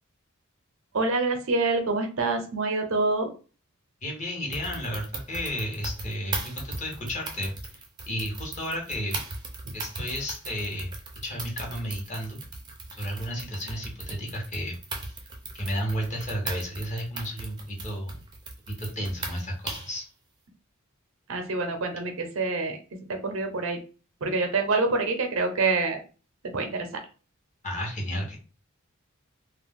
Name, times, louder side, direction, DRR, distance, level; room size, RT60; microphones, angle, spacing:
voice 1, 0.9-3.3 9.6-9.7 21.3-22.8 23.1-23.8 24.2-26.0 26.5-26.9, right 3 dB, 75° right, 6 dB, 0.6 m, -26 dB
voice 2, 4.0-7.5 8.1-9.2 9.7-11.0 11.2-12.4 13.0-15.1 15.5-18.2 18.7-20.0 27.6-28.4, equal, 35° left, 0 dB, 0.9 m, -32 dB
sound 1, 4.5-20.0, right 3 dB, 20° right, 0.5 m, -38 dB
2.4 x 2.1 x 3.5 m, 0.36 s
head